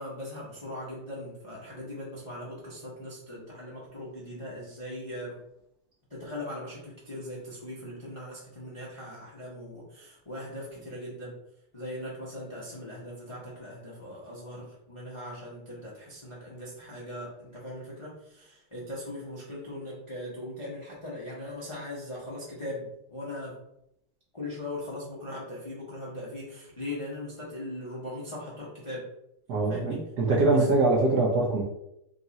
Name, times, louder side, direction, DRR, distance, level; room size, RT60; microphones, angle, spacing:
voice 1, 0.0-5.4 6.1-11.3 11.7-23.5 24.3-29.1 29.7-30.0 30.5-30.7, left 1 dB, 50° left, -6 dB, 0.3 m, -39 dB
voice 2, 29.5-31.6, right 2 dB, 70° right, -2 dB, 1.0 m, -23 dB
3.8 x 2.4 x 4.0 m, 0.80 s
omnidirectional pair, 2.3 m